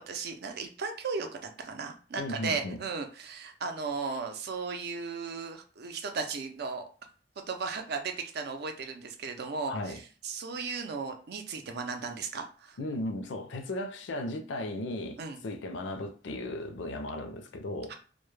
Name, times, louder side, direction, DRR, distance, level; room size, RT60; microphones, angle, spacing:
voice 1, 0.0-6.8 7.5-12.8 15.2-15.4 17.9-18.0, right 4 dB, 60° right, 0.5 m, -36 dB
voice 2, 2.2-2.8 9.7-10.0 12.8-15.2 15.4-17.9, left 1 dB, 85° left, 0.4 m, -36 dB
2.2 x 2.0 x 3.1 m
head